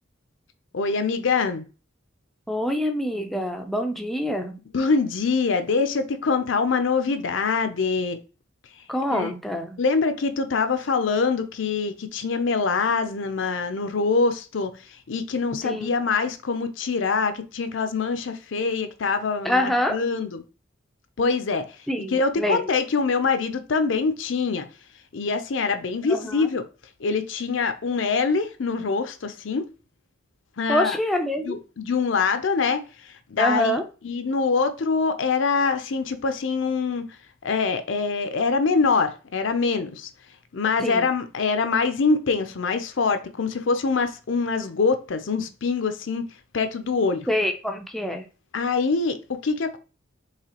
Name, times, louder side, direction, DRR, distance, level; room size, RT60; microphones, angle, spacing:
voice 1, 0.7-1.6 4.7-8.2 9.1-9.3 9.8-14.7 15.1-20.4 21.2-21.6 22.1-24.7 25.1-26.6 27.0-29.7 30.6-31.0 31.4-37.1 37.4-40.1 40.5-46.2 46.5-47.3 48.5-49.8, left 4 dB, 70° left, 0.6 m, -24 dB
voice 2, 2.5-4.6 8.9-9.8 15.6-16.0 19.4-19.9 21.9-22.6 26.1-26.5 30.7-31.6 33.4-33.8 40.8-41.1 47.3-48.2, left 1 dB, ahead, 0.4 m, -25 dB
4.8 x 3.2 x 2.9 m
head